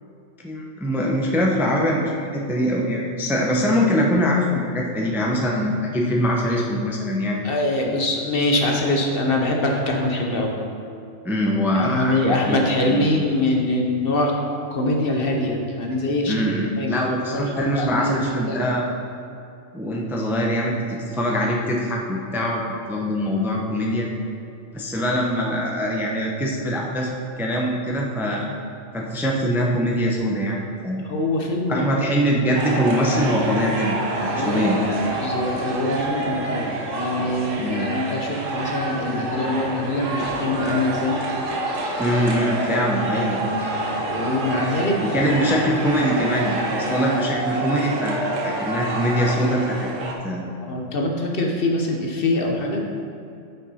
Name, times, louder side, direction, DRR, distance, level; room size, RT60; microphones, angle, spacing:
voice 1, 0.4-7.4 11.2-13.3 16.3-18.9 19.7-22.6 22.9-24.1 24.7-28.5 28.9-30.6 30.8-31.0 31.7-34.8 37.6-37.9 42.0-43.6 45.0-49.9 50.2-50.4, equal, ahead, -2 dB, 0.6 m, -23 dB
voice 2, 7.4-10.5 11.7-14.4 14.7-16.4 16.8-18.6 31.1-32.1 34.3-34.7 35.2-41.2 42.7-42.8 43.6-45.2 50.6-52.9, left 1 dB, 50° left, 1 dB, 0.9 m, -24 dB
sound 1, 32.6-50.1, right 2 dB, 90° right, 1.4 m, -27 dB
9.4 x 5.4 x 4.2 m, 2.6 s
omnidirectional pair, 1.3 m